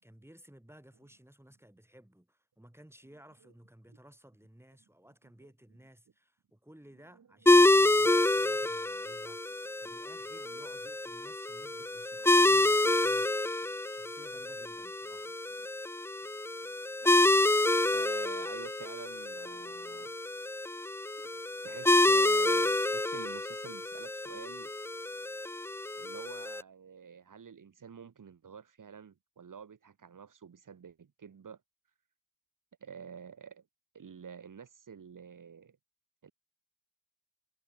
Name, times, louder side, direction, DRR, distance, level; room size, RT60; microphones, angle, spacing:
voice 1, 0.0-13.3 13.9-15.4, right 1 dB, 10° right, 5.3 m, -57 dB
voice 2, 7.1-7.5 10.4-10.5 12.2-12.3 17.0-20.1 21.2-24.7 26.0-31.6 32.8-33.6 33.9-35.8 36.2-36.3, right 7 dB, 80° right, 1.7 m, -49 dB
sound 1, 7.5-26.6, left 2 dB, 10° left, 0.3 m, -28 dB
wide cardioid pair, 85°, 31 cm